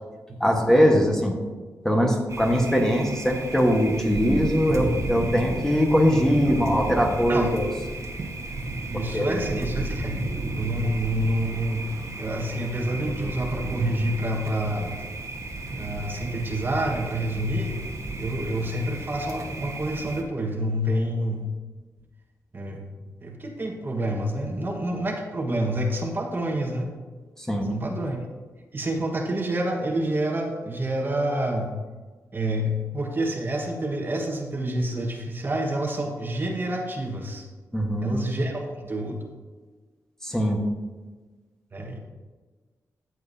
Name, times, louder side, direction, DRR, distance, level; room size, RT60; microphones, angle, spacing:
voice 1, 0.4-1.4 1.8-7.7 8.9-9.4 27.4-27.7 37.7-38.1 40.2-40.6, equal, 5° left, 1 dB, 1.3 m, -21 dB
Thunder, 2.3-20.2, right 2 dB, 50° right, 1.4 m, -33 dB
voice 2, 8.9-10.2 10.5-11.9 12.2-14.9 15.7-17.8 18.2-21.5 22.5-22.8 23.2-26.9 27.7-28.2 28.7-31.7 32.3-37.5 38.0-39.2 41.7-42.0, right 1 dB, 35° right, 1 dB, 1.4 m, -28 dB
14.0 x 8.0 x 2.7 m, 1.4 s
cardioid pair, 95°, 6 cm